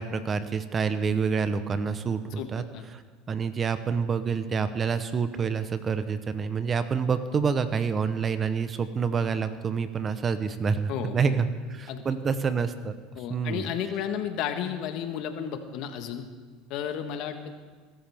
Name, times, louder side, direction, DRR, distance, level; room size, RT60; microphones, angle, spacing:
voice 1, 0.0-2.6 2.9-3.0 3.3-13.0 13.3-13.7, right 5 dB, 30° right, 11 dB, 0.9 m, -27 dB
voice 2, 10.9-11.4 11.9-12.0 13.1-16.2 16.7-17.5, left 9 dB, 60° left, 7 dB, 1.5 m, -32 dB
20.0 x 13.0 x 3.6 m, 1.4 s
supercardioid pair, 100°, 0 cm